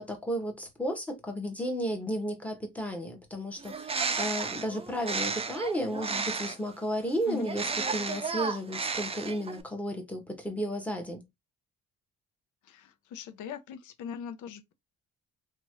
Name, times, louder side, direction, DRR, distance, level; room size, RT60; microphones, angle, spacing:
voice 1, 0.0-7.6 7.9-11.2, equal, 5° left, 1.1 m, -33 dB
Bird, 3.6-6.7 7.4-9.6, right 4 dB, 20° right, 0.4 m, -33 dB
voice 2, 12.6-14.7, left 7 dB, 75° left, 0.6 m, -40 dB
3.0 x 2.4 x 3.0 m
cardioid pair, 90°, 30 cm